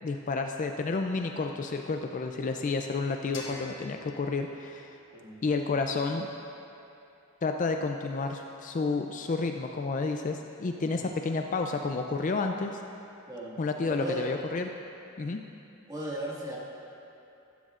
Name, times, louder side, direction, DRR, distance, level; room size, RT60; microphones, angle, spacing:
voice 1, 0.0-5.0 5.4-6.3 7.4-12.8 13.6-14.7 15.2-15.4, left 3 dB, 35° left, 4 dB, 0.4 m, -30 dB
sound 1, 3.3-6.2, left 3 dB, 60° left, 1.7 m, -48 dB
voice 2, 13.3-13.6 13.9-14.3 15.9-16.6, right 1 dB, 15° right, -6 dB, 1.8 m, -36 dB
15.5 x 12.0 x 2.5 m, 2.8 s
head